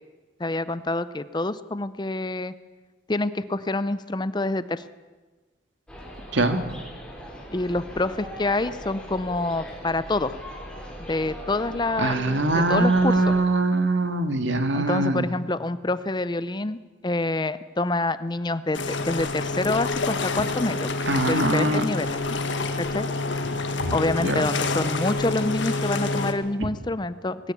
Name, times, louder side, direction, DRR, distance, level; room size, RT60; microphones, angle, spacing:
voice 1, 0.4-2.5 3.1-4.8 7.5-10.4 11.1-13.2 14.7-20.9 21.3-22.2 22.8-23.1 23.9-27.5, left 2 dB, 20° left, 14 dB, 0.6 m, -27 dB
sound 1, 5.9-13.4, equal, 5° left, 4.1 m, -40 dB
voice 2, 12.0-15.3 21.1-21.8 23.8-23.9 24.2-24.4, right 2 dB, 70° right, 7 dB, 1.9 m, -22 dB
sound 2, 18.7-26.3, left 3 dB, 65° left, 1.8 m, -27 dB
19.5 x 17.5 x 8.4 m, 1.2 s
head